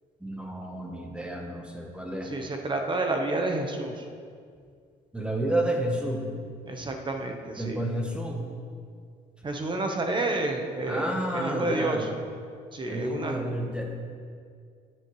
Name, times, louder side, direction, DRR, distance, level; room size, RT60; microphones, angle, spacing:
voice 1, 0.2-2.3 5.1-6.3 7.6-8.5 10.9-12.1 12.9-13.9, right 1 dB, 5° right, 1 dB, 1.1 m, -30 dB
voice 2, 2.2-4.0 6.6-7.8 9.4-12.1 12.7-13.4, right 2 dB, 30° right, 4 dB, 1.0 m, -30 dB
12.5 x 7.6 x 3.2 m, 2.2 s
cardioid pair, 110°, 17 cm